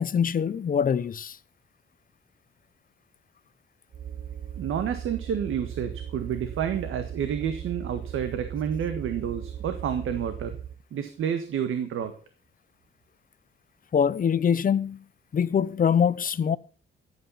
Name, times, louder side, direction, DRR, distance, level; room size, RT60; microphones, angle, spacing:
voice 1, 0.0-1.4 13.9-15.0 15.3-16.6, left 7 dB, 40° left, 0.8 m, -24 dB
sound 1, 3.9-10.8, right 9 dB, 45° right, 0.8 m, -38 dB
voice 2, 4.6-10.6 10.9-12.1, right 8 dB, 80° right, 1.6 m, -29 dB
14.5 x 9.0 x 5.6 m
cardioid pair, 105°, 21 cm